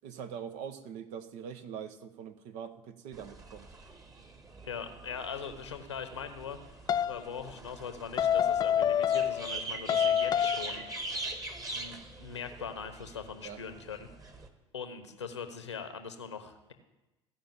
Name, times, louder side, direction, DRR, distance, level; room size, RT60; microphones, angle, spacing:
voice 1, 0.0-3.7 13.4-13.6, right 8 dB, 55° right, 9 dB, 1.1 m, -43 dB
sound 1, 3.1-14.5, right 3 dB, 25° right, 1.7 m, -43 dB
voice 2, 4.6-6.6 7.1-10.8 11.7-14.1 14.7-16.7, left 6 dB, 80° left, 8 dB, 1.2 m, -41 dB
sound 2, 6.9-7.2 8.2-9.6 9.9-10.8, left 9 dB, 30° left, 0.3 m, -27 dB
15.0 x 5.7 x 8.9 m, 1.0 s
figure-of-eight pair, 60°, 14 cm